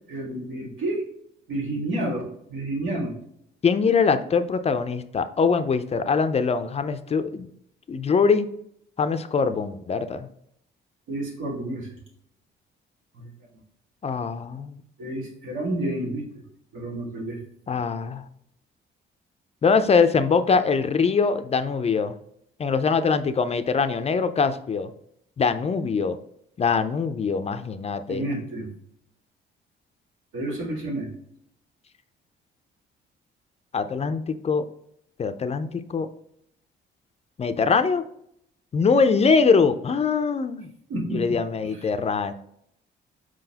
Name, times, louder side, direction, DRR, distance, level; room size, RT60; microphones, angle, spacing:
voice 1, 0.1-1.0 1.5-3.2 4.2-4.3 11.1-12.0 13.2-13.3 15.0-16.3 16.7-17.4 28.1-28.7 30.3-31.1 40.9-41.2, right 1 dB, 90° right, -2 dB, 1.7 m, -30 dB
voice 2, 3.6-7.5 7.9-8.5 9.0-10.3 14.0-14.8 17.7-18.2 19.6-22.1 22.6-24.9 25.4-26.2 26.6-28.2 33.7-34.6 35.2-36.1 37.4-38.0 38.7-40.7 41.1-42.3, left 5 dB, 30° left, 10 dB, 0.4 m, -23 dB
4.7 x 3.9 x 2.8 m, 0.71 s
cardioid pair, 90°, 20 cm